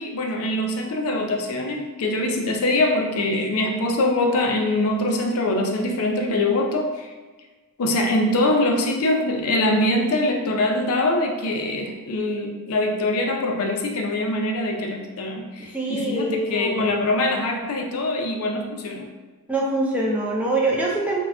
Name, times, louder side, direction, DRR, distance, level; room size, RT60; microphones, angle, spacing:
voice 1, 0.0-7.1 7.8-19.1, left 1 dB, 70° left, 3 dB, 0.4 m, -23 dB
voice 2, 15.6-17.0 19.5-21.2, right 2 dB, 5° right, -4 dB, 0.3 m, -24 dB
2.3 x 2.2 x 3.5 m, 1.3 s
head